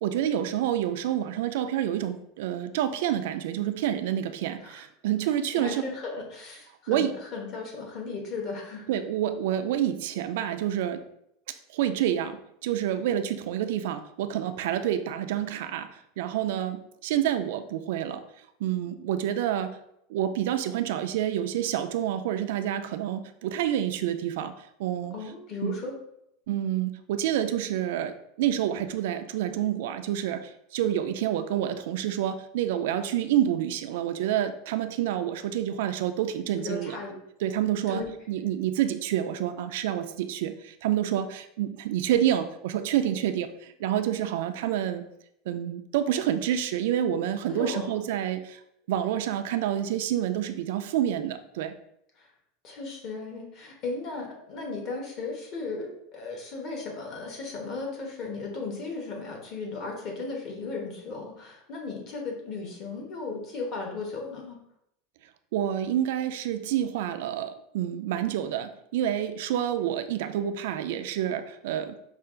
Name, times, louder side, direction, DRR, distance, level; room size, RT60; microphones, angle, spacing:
voice 1, 0.0-5.8 6.9-7.1 8.9-11.0 11.7-15.9 16.2-18.2 18.6-19.8 20.1-24.5 24.8-25.1 25.6-25.8 26.5-37.0 37.4-45.0 45.5-48.6 48.9-51.7 65.5-72.0, right 11 dB, 70° right, 9 dB, 0.4 m, -28 dB
voice 2, 5.5-8.9 25.1-26.0 36.6-37.1 37.9-38.1 47.5-48.0 52.2-52.3 52.6-64.6, left 3 dB, 40° left, 0 dB, 1.2 m, -36 dB
5.5 x 2.4 x 3.8 m, 0.77 s
supercardioid pair, 160°, 0 cm